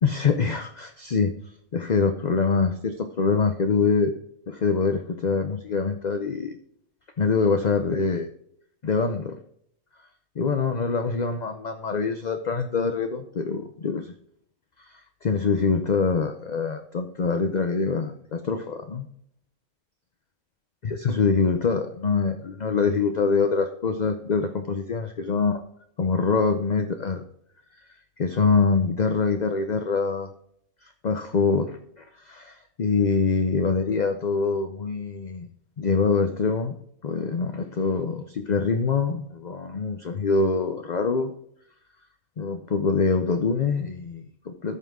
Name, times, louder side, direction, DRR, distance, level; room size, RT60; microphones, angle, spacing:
voice 1, 0.0-1.3 1.7-4.1 4.5-6.6 7.2-8.3 8.8-9.4 10.4-14.1 14.8-19.1 20.8-25.6 26.0-27.2 28.2-30.3 30.8-35.5 35.8-36.8 37.0-41.3 42.4-44.8, left 4 dB, 45° left, 7 dB, 0.6 m, -24 dB
13.5 x 5.8 x 3.6 m, 0.68 s
omnidirectional pair, 1.5 m